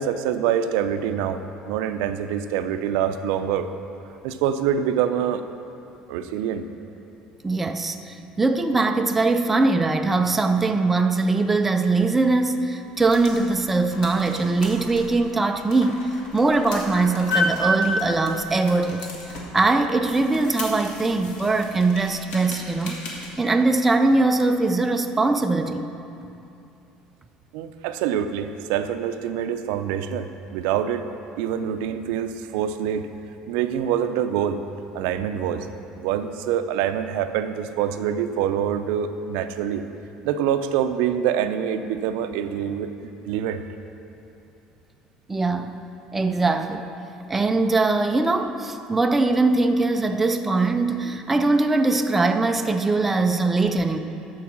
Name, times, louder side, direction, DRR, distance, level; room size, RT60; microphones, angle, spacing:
voice 1, 0.0-3.7 4.2-5.4 6.1-6.6 27.5-31.1 31.4-33.1 33.5-34.6 34.9-35.7 35.9-39.8 40.2-42.9 43.2-43.6, right 9 dB, 85° right, 9 dB, 0.5 m, -25 dB
voice 2, 7.4-16.1 16.3-19.1 19.5-23.0 23.4-25.8 45.3-45.8 46.1-46.9 47.3-54.0, right 3 dB, 10° right, 6 dB, 0.3 m, -21 dB
sound 1, 12.8-23.3, left 1 dB, 55° left, 1.7 m, -32 dB
13.5 x 4.7 x 6.0 m, 2.7 s
cardioid pair, 175°, 2 cm